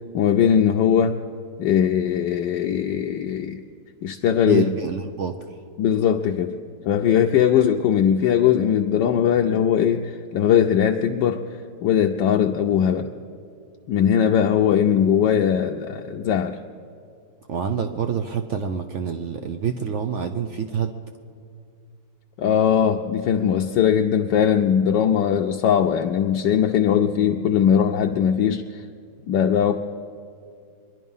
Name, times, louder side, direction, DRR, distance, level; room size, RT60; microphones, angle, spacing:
voice 1, 0.1-1.2 1.6-3.6 4.0-4.6 5.8-6.5 6.9-11.5 11.8-13.1 13.9-16.6 22.4-28.6 29.3-29.8, left 8 dB, 80° left, 2 dB, 1.2 m, -20 dB
voice 2, 4.5-5.4 17.5-20.9, right 7 dB, 75° right, 7 dB, 0.6 m, -27 dB
24.0 x 11.0 x 5.5 m, 2.3 s
omnidirectional pair, 2.0 m